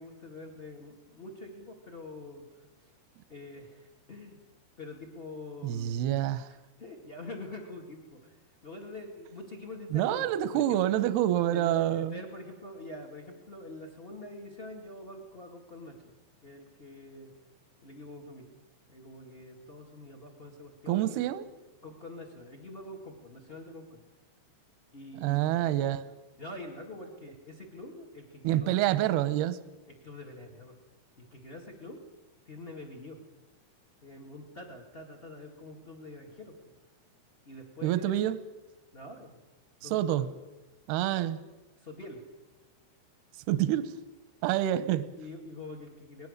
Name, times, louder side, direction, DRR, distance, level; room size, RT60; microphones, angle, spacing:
voice 1, 0.0-2.9 3.3-4.4 4.8-6.0 6.8-10.8 11.5-16.1 16.4-17.3 17.8-18.5 18.9-21.3 21.8-24.0 24.9-25.8 26.4-28.8 29.9-30.8 31.2-32.0 32.4-33.2 34.0-36.5 37.4-38.3 38.9-39.4 39.8-40.3 41.8-42.2 43.5-43.8 44.7-44.9 45.2-46.3, left 2 dB, 45° left, 3 dB, 0.7 m, -45 dB
voice 2, 5.6-6.5 9.9-12.2 20.9-21.5 25.2-26.0 28.4-29.6 37.8-38.4 39.8-40.3 40.9-41.4 43.5-43.9 44.4-45.1, right 12 dB, 75° right, 14 dB, 2.4 m, -27 dB
25.0 x 20.0 x 6.6 m, 1.1 s
omnidirectional pair, 5.5 m